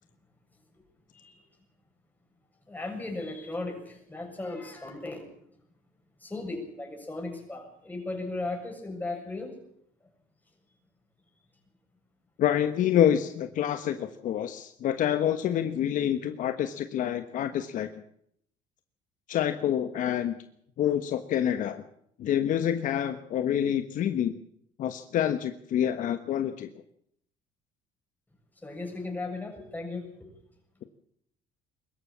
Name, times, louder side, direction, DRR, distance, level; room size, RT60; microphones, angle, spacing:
voice 1, 2.7-5.3 6.2-9.5 28.6-30.3, left 2 dB, 10° left, 2 dB, 7.3 m, -36 dB
voice 2, 12.4-17.9 19.3-20.4 20.8-21.8 22.2-24.4 24.8-26.8, left 10 dB, 60° left, 9 dB, 1.3 m, -27 dB
22.5 x 13.5 x 8.6 m, 0.70 s
cardioid pair, 105°, 15 cm